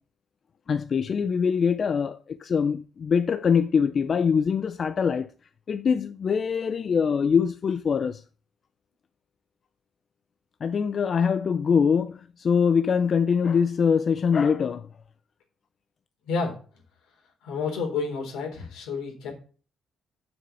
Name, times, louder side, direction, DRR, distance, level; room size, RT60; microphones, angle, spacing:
voice 1, 0.7-5.3 5.7-8.2 10.6-14.9, left 6 dB, 50° left, 0.5 m, -23 dB
voice 2, 16.3-16.6 17.4-19.3, left 4 dB, 90° left, 3.9 m, -30 dB
7.1 x 6.5 x 7.4 m
cardioid pair, 90°, 0 cm